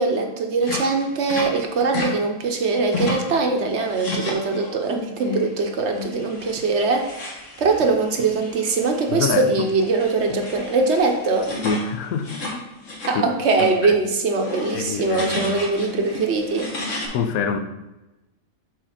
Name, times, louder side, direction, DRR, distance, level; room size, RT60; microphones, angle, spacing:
voice 1, 0.0-7.1 7.6-11.5 13.1-16.7, right 3 dB, 60° right, 3 dB, 0.9 m, -22 dB
sound 1, 0.6-2.1 2.4-3.4 3.7-4.9 5.2-5.5 5.9-13.2 13.4-13.7 14.2-17.1, left 2 dB, 60° left, 1.5 m, -33 dB
voice 2, 9.1-9.7 11.6-12.6 13.1-13.2 13.6-13.9 14.7-15.5 17.1-17.6, left 5 dB, 80° left, 8 dB, 1.1 m, -26 dB
4.7 x 4.6 x 5.7 m, 1.0 s
omnidirectional pair, 1.5 m